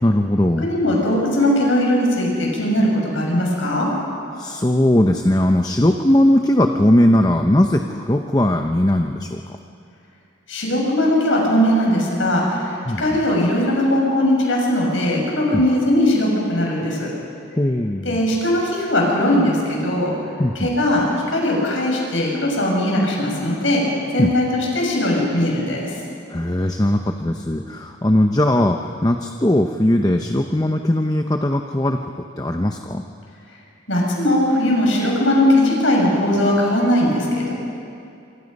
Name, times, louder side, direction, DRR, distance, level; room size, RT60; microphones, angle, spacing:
voice 1, 0.0-0.7 4.4-9.4 12.9-13.2 15.5-15.6 17.6-18.2 20.4-20.8 24.2-24.3 26.3-32.1 32.4-33.0, left 1 dB, 20° left, 5 dB, 0.8 m, -19 dB
voice 2, 0.6-3.9 10.5-17.1 18.0-20.1 20.5-23.8 24.1-25.9 33.9-37.5, left 1 dB, 80° left, -2 dB, 6.5 m, -19 dB
27.5 x 25.5 x 5.4 m, 2.5 s
head